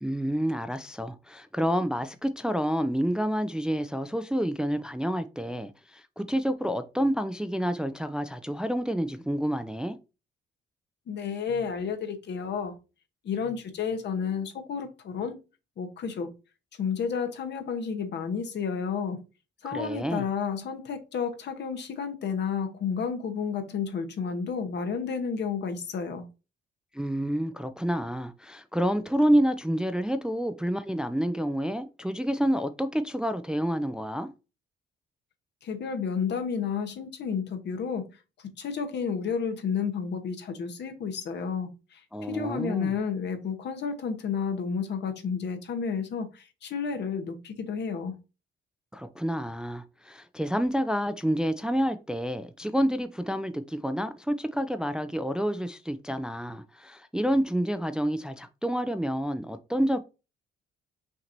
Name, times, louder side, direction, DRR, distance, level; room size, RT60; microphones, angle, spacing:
voice 1, 0.0-10.0 19.6-20.3 26.9-34.3 42.1-42.9 48.9-60.0, equal, 5° right, 0.4 m, -28 dB
voice 2, 11.1-12.8 13.2-15.4 15.8-16.3 16.8-19.2 19.6-26.3 35.6-38.1 38.4-42.0 42.3-48.2, left 6 dB, 60° left, 1.0 m, -31 dB
5.9 x 2.9 x 2.6 m
cardioid pair, 90°, 20 cm